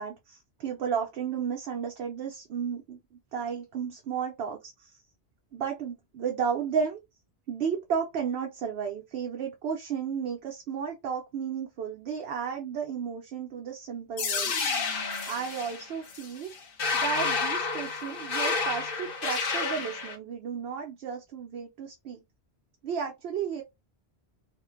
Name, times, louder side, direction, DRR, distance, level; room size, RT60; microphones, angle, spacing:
voice 1, 0.0-5.0 5.5-7.0 7.5-14.5 15.3-16.5 16.9-22.2 22.8-23.6, right 7 dB, 70° right, 0.8 m, -33 dB
sound 1, 14.2-20.2, left 4 dB, 60° left, 0.8 m, -30 dB
2.5 x 2.1 x 2.4 m
omnidirectional pair, 1.1 m